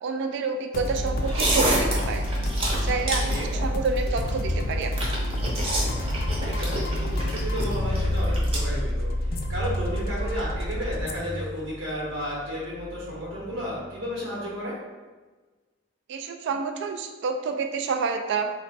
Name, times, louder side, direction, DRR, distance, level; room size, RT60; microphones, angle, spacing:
voice 1, 0.0-2.2 2.8-4.9 16.1-18.5, right 4 dB, 65° right, 5 dB, 0.3 m, -28 dB
sound 1, 0.7-14.1, left 1 dB, 50° left, 0.4 m, -29 dB
sound 2, 1.2-8.6, right 1 dB, 30° right, 0.7 m, -29 dB
voice 2, 3.1-3.5 6.4-14.8, equal, 85° right, -7 dB, 1.0 m, -33 dB
3.0 x 2.1 x 4.1 m, 1.3 s
head